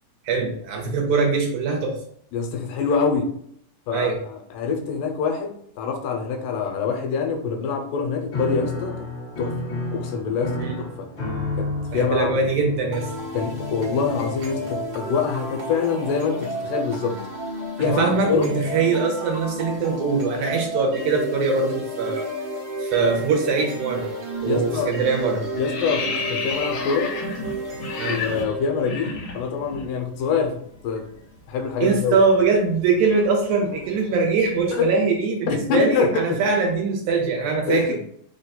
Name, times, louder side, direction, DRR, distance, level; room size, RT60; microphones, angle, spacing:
voice 1, 0.2-2.0 3.9-4.2 10.6-10.8 11.9-13.1 17.8-22.3 22.8-24.1 24.4-25.4 28.0-28.2 31.8-38.0, right 4 dB, 75° right, 1 dB, 1.9 m, -22 dB
voice 2, 2.3-3.4 3.9-4.1 4.6-9.1 9.4-9.6 9.9-11.1 11.6-12.4 13.3-17.2 17.8-18.5 24.4-24.9 25.6-27.1 28.1-31.1 31.5-32.2 34.7-34.9 35.5-36.4 37.7-38.0, left 5 dB, 90° left, 3 dB, 2.3 m, -25 dB
Piano, 8.3-15.1, left 2 dB, 45° left, 1.6 m, -31 dB
sound 1, 12.9-28.9, right 1 dB, 55° right, 1.4 m, -32 dB
sound 2, 24.3-24.6 24.9-29.9 30.1-30.3 30.6-34.7, left 4 dB, 65° left, 1.6 m, -33 dB
5.1 x 2.2 x 3.9 m, 0.66 s
omnidirectional pair, 3.8 m